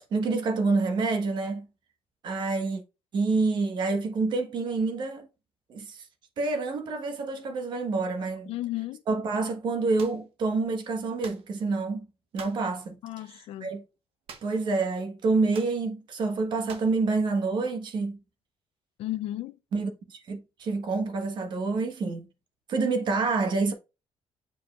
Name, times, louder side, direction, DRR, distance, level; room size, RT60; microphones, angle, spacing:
voice 1, 0.1-1.7 2.2-2.8 3.1-5.3 5.7-6.0 6.4-8.5 9.1-12.1 12.3-13.0 13.3-13.8 14.4-18.2 19.7-22.2 22.7-23.7, right 3 dB, 50° right, 1.3 m, -27 dB
voice 2, 8.5-9.0 13.0-13.7 19.0-19.6, left 15 dB, 85° left, 0.5 m, -33 dB
sound 1, 10.0-10.2 11.2-11.5 12.4-12.7 14.3-14.7 14.9-15.0 15.5-15.8 16.7-17.0, right 6 dB, 70° right, 1.3 m, -45 dB
7.4 x 5.2 x 2.4 m
cardioid pair, 165°, 10 cm